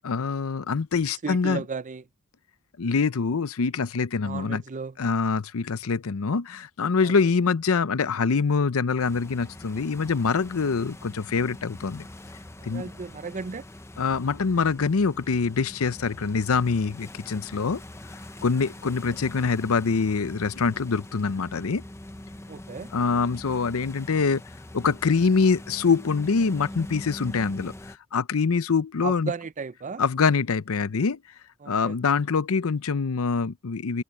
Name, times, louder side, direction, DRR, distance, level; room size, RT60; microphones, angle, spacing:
voice 1, 0.0-1.6 2.8-4.6 5.0-12.0 12.6-12.9 14.0-17.8 18.4-21.8 22.9-24.4 24.7-29.3 30.0-31.2 31.7-34.0, left 5 dB, 85° left, 0.6 m, -24 dB
voice 2, 1.2-2.0 4.2-5.0 7.0-7.2 10.6-10.7 12.6-13.7 19.0-19.6 22.5-22.9 29.0-30.1 31.6-32.0, right 5 dB, 35° right, 0.5 m, -35 dB
sound 1, 9.0-28.0, left 1 dB, 15° left, 0.8 m, -43 dB
head